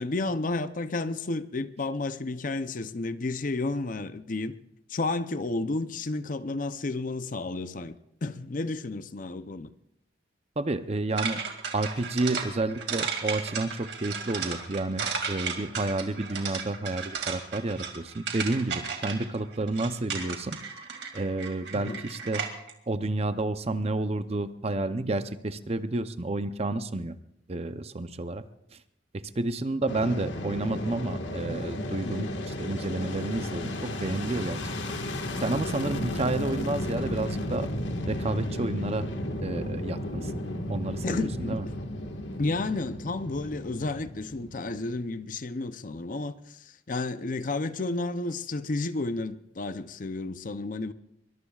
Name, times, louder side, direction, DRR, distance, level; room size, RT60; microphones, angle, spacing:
voice 1, 0.0-4.6 4.9-7.9 8.2-9.7 21.7-22.0 32.0-32.4 41.0-41.8 42.4-50.9, left 2 dB, 45° left, 0.6 m, -32 dB
voice 2, 10.6-11.4 11.7-20.6 21.1-22.4 22.9-27.2 27.5-28.4 28.7-28.8 29.1-34.6 35.4-37.7 38.1-39.1 39.4-40.4 40.7-41.7, right 2 dB, 35° right, 0.6 m, -30 dB
sound 1, 11.2-22.7, right 6 dB, 65° right, 2.3 m, -34 dB
Fixed-wing aircraft airplane, 29.9-45.0, left 1 dB, 85° left, 1.7 m, -34 dB
23.0 x 21.5 x 2.4 m
head